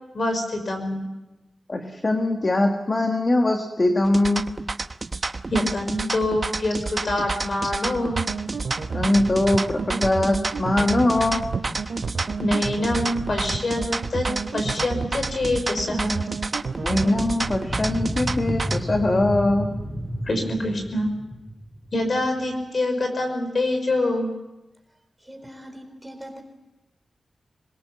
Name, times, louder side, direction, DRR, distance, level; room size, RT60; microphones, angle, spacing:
voice 1, 0.1-1.1 5.5-8.2 12.4-14.3 14.5-16.3 20.2-21.1 21.9-24.3, left 1 dB, 45° left, 4 dB, 5.7 m, -25 dB
voice 2, 1.7-4.5 8.9-11.5 16.8-19.7, left 2 dB, 30° left, 4 dB, 1.6 m, -22 dB
sound 1, 4.0-18.8, right 3 dB, 35° right, 0.9 m, -30 dB
sound 2, 8.1-17.6, right 5 dB, 75° right, 2.4 m, -31 dB
sound 3, 17.7-22.5, equal, 15° left, 4.2 m, -31 dB
voice 3, 24.9-26.4, equal, 5° right, 4 dB, 3.8 m, -42 dB
26.5 x 21.5 x 7.5 m, 1.0 s
wide cardioid pair, 160°, 0 cm